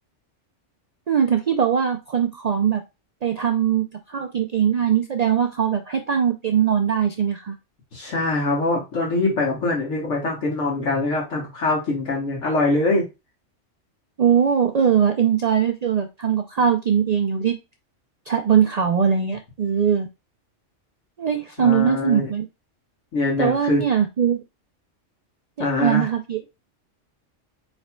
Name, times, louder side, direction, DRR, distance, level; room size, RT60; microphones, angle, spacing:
voice 1, 1.1-2.8 3.2-7.6 14.2-17.5 18.3-20.1 21.2-22.5 23.4-24.4 25.8-26.4, right 8 dB, 75° right, 5 dB, 0.3 m, -21 dB
voice 2, 7.9-13.1 21.6-22.3 23.1-23.8 25.6-26.1, left 2 dB, 75° left, -3 dB, 1.6 m, -23 dB
4.8 x 4.4 x 2.2 m, 0.25 s
omnidirectional pair, 1.3 m